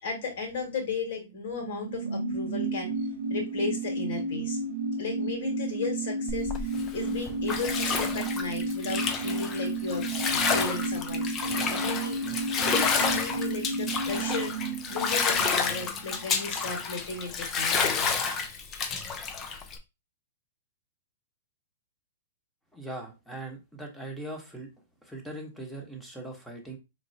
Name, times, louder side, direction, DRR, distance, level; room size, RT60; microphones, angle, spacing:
voice 1, 0.0-2.9 3.3-4.6 5.0-11.3 11.7-12.2 12.5-14.5 14.9-19.1, left 4 dB, 65° left, 1 dB, 2.0 m, -35 dB
sound 1, 1.3-16.6 16.8-16.9, right 2 dB, 65° right, 0.7 m, -32 dB
Bathtub (filling or washing), 6.3-19.8, left 5 dB, 25° left, 0.6 m, -30 dB
voice 2, 22.7-24.7 25.0-26.8, right 1 dB, 5° left, 1 dB, 1.2 m, -40 dB
4.0 x 3.2 x 2.8 m, 0.25 s
hypercardioid pair, 135°, 0 cm